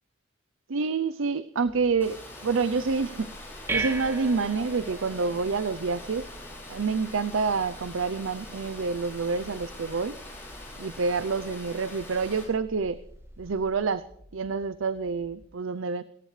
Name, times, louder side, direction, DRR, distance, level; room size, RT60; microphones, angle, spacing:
voice 1, 0.7-3.3 3.7-6.3 6.7-10.2 10.8-13.0 13.4-14.1 14.3-16.0, right 4 dB, 80° right, 13 dB, 0.6 m, -28 dB
sound 1, 1.6-15.5, left 1 dB, 40° left, 6.0 m, -55 dB
Water, 2.0-12.4, left 2 dB, 10° left, 7.1 m, -44 dB
sound 2, 2.9-13.8, right 3 dB, 15° right, 1.6 m, -41 dB
28.5 x 14.5 x 3.3 m, 0.74 s
head